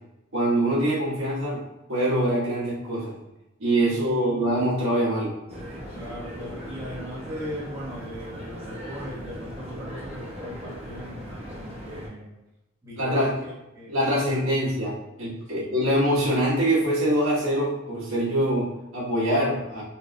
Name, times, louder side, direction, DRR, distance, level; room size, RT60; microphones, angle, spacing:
voice 1, 0.3-1.6 1.9-3.1 3.6-5.3 13.0-13.3 13.9-19.8, right 1 dB, 85° right, -7 dB, 1.5 m, -24 dB
voice 2, 3.8-4.5 5.9-12.3 12.8-13.3 13.7-13.9 14.2-14.7 15.5-15.7, equal, 15° right, -8 dB, 1.4 m, -39 dB
sound 1, 5.5-12.1, equal, 30° right, 1.0 m, -38 dB
4.2 x 3.4 x 2.3 m, 0.96 s
head